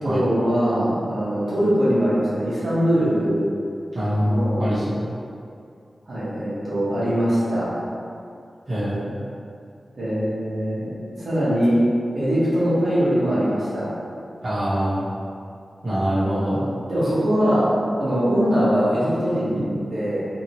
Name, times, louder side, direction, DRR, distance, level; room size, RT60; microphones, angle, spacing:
voice 1, 0.0-3.5 4.2-4.6 6.1-7.7 9.9-11.8 12.1-13.9 16.5-16.6 16.9-17.7 18.0-20.2, equal, 65° right, -10 dB, 1.0 m, -22 dB
voice 2, 3.9-5.0 8.7-9.3 14.4-15.1 15.8-16.6, equal, 45° right, -12 dB, 0.9 m, -24 dB
2.8 x 2.8 x 2.7 m, 2.4 s
wide cardioid pair, 90°, 0 cm